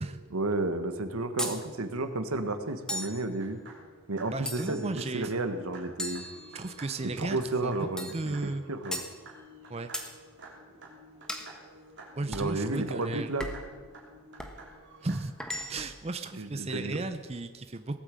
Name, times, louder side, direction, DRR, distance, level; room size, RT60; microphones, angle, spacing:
voice 1, 0.3-3.6 4.1-6.2 7.0-9.0 12.3-13.5 16.4-17.0, right 2 dB, 85° right, 9 dB, 1.3 m, -32 dB
sound 1, 1.4-1.6 2.9-3.2 4.5-4.9 6.0-6.9 8.0-8.2 8.9-9.1 9.9-10.1 11.3-11.5 12.3-12.5 13.4-13.7 14.4-14.6 15.4-16.0, left 1 dB, 5° left, 1.0 m, -37 dB
sound 2, 2.7-15.2, right 1 dB, 55° right, 3.3 m, -51 dB
voice 2, 4.3-5.3 6.5-8.6 9.7-9.9 12.1-13.3 15.0-15.3 15.7-18.0, right 2 dB, 30° right, 9 dB, 0.6 m, -35 dB
18.0 x 8.7 x 7.6 m, 1.4 s
head